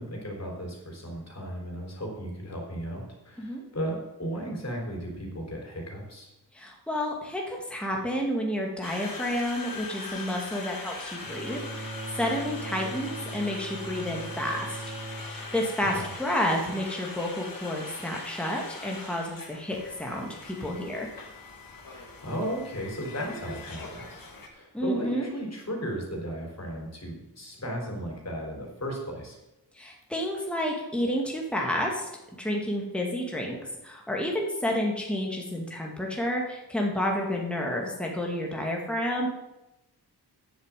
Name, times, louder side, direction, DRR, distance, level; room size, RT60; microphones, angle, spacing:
voice 1, 0.0-6.3 15.9-16.1 21.9-24.2 24.5-29.4, equal, 40° left, 0 dB, 3.8 m, -35 dB
voice 2, 6.6-14.7 15.2-21.1 24.7-25.3 29.8-32.1 32.4-33.6 33.8-39.3, left 1 dB, 5° left, -1 dB, 2.1 m, -30 dB
Conversation, 8.8-24.5, left 3 dB, 55° left, 2.2 m, -41 dB
Bowed string instrument, 11.2-16.7, right 1 dB, 25° right, 1.9 m, -40 dB
9.7 x 7.6 x 7.5 m, 0.95 s
wide cardioid pair, 105°, 41 cm